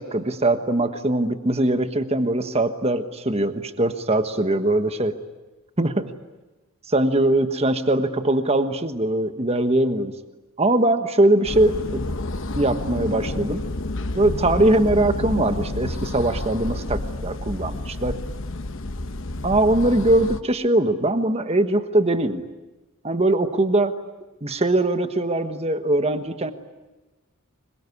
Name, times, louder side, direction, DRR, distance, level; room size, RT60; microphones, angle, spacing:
voice 1, 0.0-5.1 5.8-6.1 6.9-10.1 10.6-12.0 12.6-13.6 14.1-18.2 19.4-22.4 23.0-23.9 24.4-26.5, right 1 dB, 30° right, 9 dB, 1.3 m, -21 dB
sound 1, 11.4-20.4, left 2 dB, 60° left, 1.0 m, -30 dB
25.5 x 23.0 x 9.8 m, 1.1 s
head